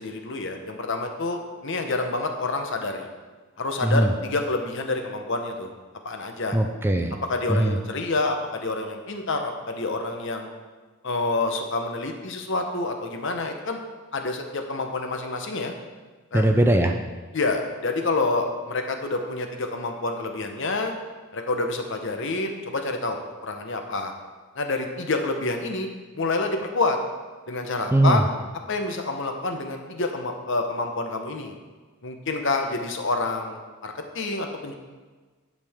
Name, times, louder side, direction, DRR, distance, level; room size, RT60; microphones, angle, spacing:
voice 1, 0.0-3.1 3.6-5.7 6.0-6.6 7.3-10.5 11.0-13.8 14.1-15.7 16.3-16.4 17.3-20.9 21.3-24.1 24.6-25.9 26.1-27.0 27.5-28.2 28.7-31.5 32.0-34.7, left 3 dB, 55° left, 4 dB, 0.9 m, -28 dB
voice 2, 6.5-7.1 7.5-7.8 16.3-16.9 27.9-28.2, right 1 dB, 10° right, 5 dB, 0.4 m, -20 dB
10.5 x 6.6 x 3.6 m, 1.4 s
head